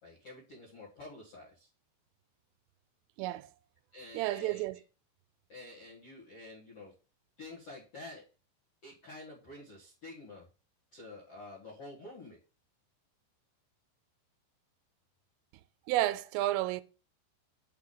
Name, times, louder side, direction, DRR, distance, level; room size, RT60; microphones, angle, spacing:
voice 1, 0.0-1.7 3.9-4.6 5.5-6.9 7.4-8.2 8.8-10.5 10.9-12.4, left 2 dB, 65° left, 1.5 m, -49 dB
voice 2, 3.2-3.5 4.1-4.8 15.9-16.8, right 15 dB, 90° right, 3.1 m, -31 dB
5.9 x 5.7 x 3.8 m
omnidirectional pair, 5.6 m